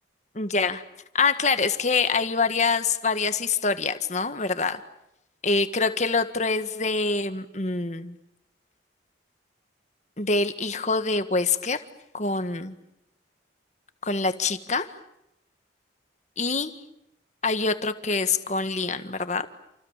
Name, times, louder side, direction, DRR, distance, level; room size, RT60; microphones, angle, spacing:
voice 1, 0.4-0.8 1.1-4.8 5.4-8.2 10.2-11.8 12.1-12.7 14.1-14.9 16.4-16.7 17.4-19.5, left 4 dB, 40° left, 10 dB, 1.6 m, -25 dB
29.0 x 27.5 x 7.4 m, 0.86 s
head